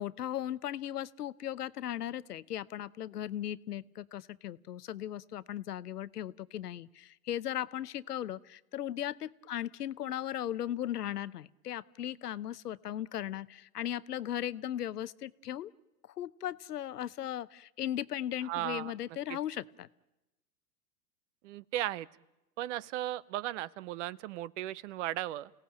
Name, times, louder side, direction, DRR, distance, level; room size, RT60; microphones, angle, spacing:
voice 1, 0.0-15.7 16.2-19.9, left 11 dB, 75° left, 18 dB, 0.9 m, -37 dB
voice 2, 18.4-18.9 19.3-19.4 21.4-22.1 22.6-25.5, right 14 dB, 50° right, 22 dB, 0.8 m, -36 dB
30.0 x 17.5 x 9.0 m, 1.0 s
hypercardioid pair, 105°, 47 cm